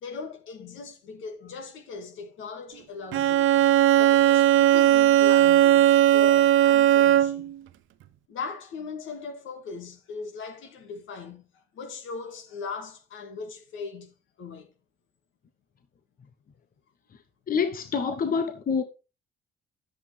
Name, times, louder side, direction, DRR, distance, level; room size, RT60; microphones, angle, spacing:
voice 1, 0.0-3.5 4.0-7.5 8.3-11.5 11.7-14.7, left 5 dB, 80° left, 2.1 m, -39 dB
Bowed string instrument, 3.1-7.5, right 12 dB, 75° right, 0.6 m, -18 dB
voice 2, 17.5-18.8, left 6 dB, 45° left, 0.9 m, -26 dB
10.0 x 7.8 x 3.4 m
cardioid pair, 90°, 20 cm